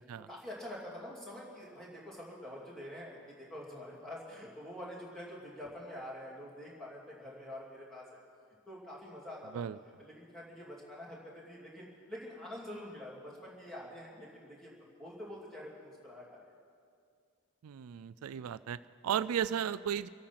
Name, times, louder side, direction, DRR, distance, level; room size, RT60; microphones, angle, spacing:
voice 1, 0.3-8.2 8.7-9.6 10.0-14.7 15.0-16.4, left 1 dB, ahead, -6 dB, 2.8 m, -46 dB
voice 2, 17.6-20.1, right 8 dB, 80° right, 15 dB, 0.3 m, -35 dB
25.5 x 8.6 x 5.9 m, 2.3 s
head